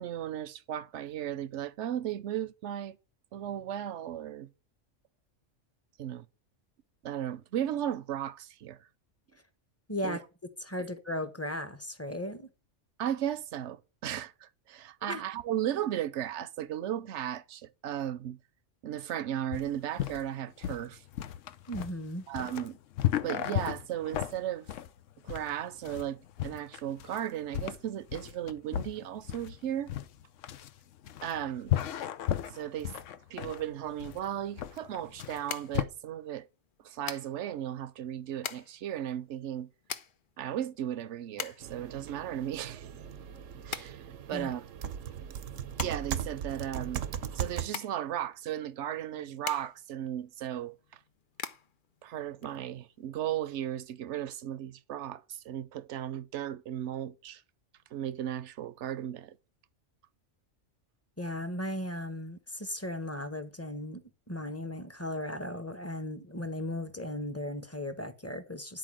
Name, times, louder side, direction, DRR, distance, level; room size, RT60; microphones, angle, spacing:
voice 1, 0.0-3.0 3.3-4.5 6.0-6.2 7.0-8.8 10.0-10.2 13.0-18.4 18.8-21.0 22.3-22.8 23.2-24.7 25.2-29.9 31.2-31.7 32.5-32.9 33.3-36.5 36.8-39.7 40.4-42.9 43.6-44.0 44.3-44.6 45.8-47.0 47.3-50.8 52.0-57.4 57.9-59.4, right 11 dB, 70° right, 1.0 m, -35 dB
voice 2, 9.9-10.2 10.6-12.5 15.0-15.2 21.7-22.2 44.3-44.5 61.2-64.0 64.3-68.8, left 1 dB, 15° left, 0.9 m, -36 dB
sound 1, 19.5-35.8, left 11 dB, 80° left, 1.0 m, -35 dB
sound 2, 34.2-53.1, left 7 dB, 50° left, 0.8 m, -45 dB
sound 3, 41.6-47.7, right 9 dB, 85° right, 1.2 m, -38 dB
10.5 x 4.7 x 7.5 m
omnidirectional pair, 1.3 m